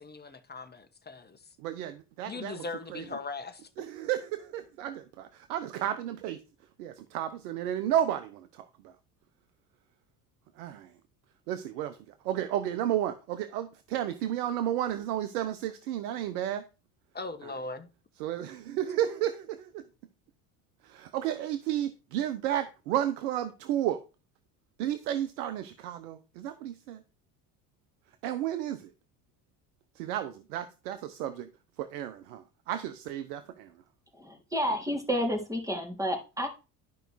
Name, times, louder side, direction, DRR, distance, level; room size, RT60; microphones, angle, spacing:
voice 1, 0.0-1.4 2.3-3.7 17.1-17.9, left 3 dB, 20° left, 1.6 m, -39 dB
voice 2, 1.6-2.6 2.9-3.0 3.8-6.4 6.8-8.9 10.6-10.9 11.5-12.0 12.2-16.6 17.4-17.5 18.2-19.8 20.8-24.0 24.8-27.0 28.2-28.9 29.9-31.5 31.8-33.7, right 11 dB, 80° right, 1.0 m, -32 dB
voice 3, 34.2-36.5, equal, 5° right, 3.3 m, -30 dB
12.0 x 5.1 x 4.7 m
hypercardioid pair, 70°, 45 cm